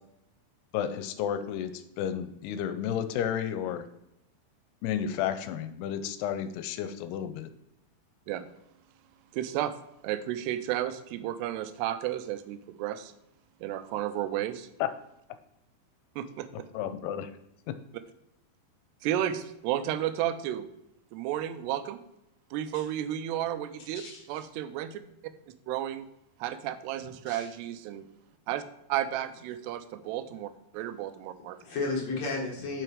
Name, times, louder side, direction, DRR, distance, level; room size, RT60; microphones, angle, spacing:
voice 1, 0.7-3.8 4.8-7.5 14.8-14.9 16.7-17.3 17.7-17.8, left 9 dB, 85° left, 11 dB, 2.7 m, -32 dB
voice 2, 9.3-9.7 10.0-13.1 13.6-14.7 16.2-16.7 19.0-20.7 21.1-22.0 22.5-24.0 24.3-25.0 25.7-26.1 26.4-28.0 28.5-28.6 28.9-31.6, right 12 dB, 90° right, 12 dB, 2.8 m, -32 dB
voice 3, 31.6-32.8, left 3 dB, 55° left, -1 dB, 2.2 m, -33 dB
7.7 x 6.2 x 4.9 m, 0.82 s
omnidirectional pair, 4.7 m